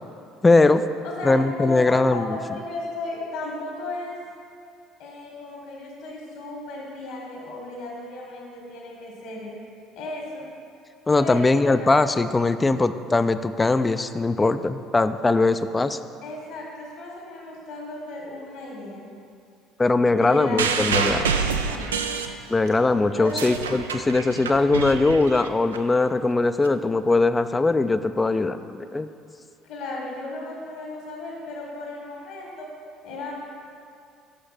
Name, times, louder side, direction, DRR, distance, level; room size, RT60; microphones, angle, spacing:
voice 1, 0.4-0.8 1.2-2.4 11.1-16.0 19.8-21.3 22.5-29.1, left 3 dB, 20° left, 11 dB, 0.3 m, -21 dB
voice 2, 1.0-4.2 5.0-9.5 9.9-10.5 11.2-11.9 16.2-19.1 20.0-21.9 23.2-23.6 29.6-32.7 33.0-33.3, left 2 dB, 70° left, -4 dB, 1.6 m, -35 dB
sound 1, 20.6-22.8 23.2-25.8 26.6-26.7, right 5 dB, 90° right, 0.3 m, -27 dB
6.2 x 5.2 x 5.8 m, 2.4 s
hypercardioid pair, 65°, 0 cm